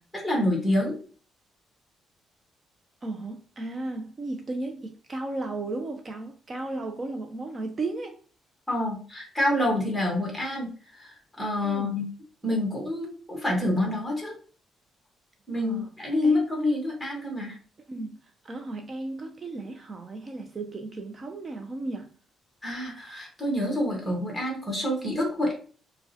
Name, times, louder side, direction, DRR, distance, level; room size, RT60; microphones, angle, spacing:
voice 1, 0.1-1.0 8.7-12.0 12.4-14.4 15.5-17.6 22.6-25.5, left 1 dB, ahead, 1.2 m, -27 dB
voice 2, 3.0-8.2 11.6-12.0 15.5-15.9 16.2-16.4 17.9-22.1, right 2 dB, 25° right, 0.3 m, -35 dB
4.5 x 2.1 x 2.7 m
cardioid pair, 175°, 0 cm